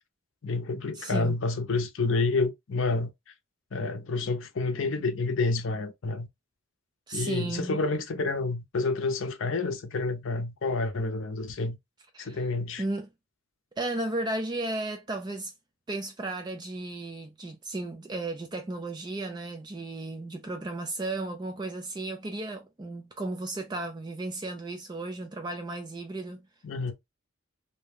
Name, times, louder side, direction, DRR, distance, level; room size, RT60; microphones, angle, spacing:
voice 1, 0.4-3.1 3.7-6.3 7.1-11.8 12.2-12.8 26.6-26.9, left 3 dB, 65° left, 0.5 m, -29 dB
voice 2, 0.9-1.4 7.1-7.8 12.1-12.5 12.8-13.1 13.8-15.5 15.9-26.5, right 2 dB, 20° right, 0.3 m, -34 dB
2.6 x 2.1 x 3.2 m
head